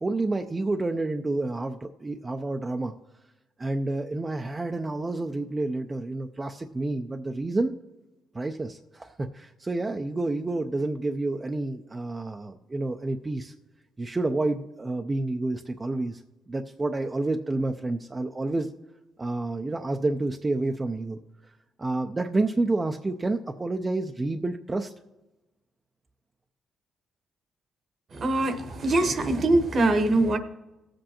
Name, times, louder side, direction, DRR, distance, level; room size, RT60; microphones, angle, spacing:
voice 1, 0.0-2.9 3.6-7.8 8.3-13.5 14.0-16.2 16.5-18.7 19.2-24.9, right 2 dB, 25° right, 4 dB, 0.5 m, -29 dB
voice 2, 28.1-30.4, right 2 dB, 50° right, 8 dB, 1.0 m, -23 dB
18.0 x 7.7 x 2.9 m, 1.1 s
cardioid pair, 90°, 0 cm